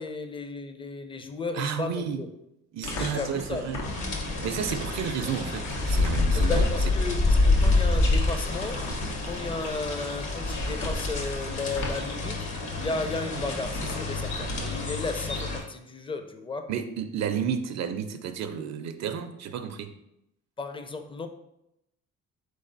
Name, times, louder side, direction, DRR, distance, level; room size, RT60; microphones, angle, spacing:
voice 1, 0.0-2.3 3.0-3.6 6.3-8.9 9.2-12.5 12.8-16.7 20.6-21.3, left 3 dB, 15° left, 7 dB, 0.5 m, -34 dB
voice 2, 1.5-2.2 2.7-3.8 4.4-6.7 16.7-19.9, right 7 dB, 60° right, 8 dB, 0.5 m, -31 dB
sound 1, 2.8-14.6, left 2 dB, 85° left, 1.0 m, -38 dB
sound 2, 3.8-15.6, left 2 dB, 65° left, 1.2 m, -27 dB
3.9 x 3.3 x 3.9 m, 0.84 s
cardioid pair, 90°, 30 cm